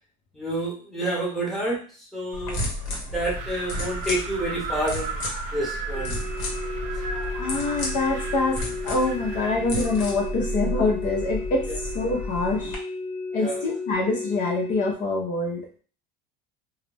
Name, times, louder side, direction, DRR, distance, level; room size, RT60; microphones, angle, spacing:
voice 1, 0.3-1.8 2.1-2.6 3.1-5.2 5.5-6.2 13.4-13.6, right 1 dB, ahead, -5 dB, 0.9 m, -28 dB
sound 1, 2.3-12.7, equal, 65° left, 1.2 m, -32 dB
Wind, 3.2-9.6, right 4 dB, 55° right, 0.5 m, -37 dB
sound 2, 5.9-14.9, left 3 dB, 25° left, 1.1 m, -34 dB
voice 2, 7.3-8.6 8.8-11.7 11.9-12.8 13.3-15.6, left 3 dB, 45° left, -1 dB, 0.7 m, -25 dB
2.4 x 2.0 x 3.2 m, 0.39 s
cardioid pair, 145°, 19 cm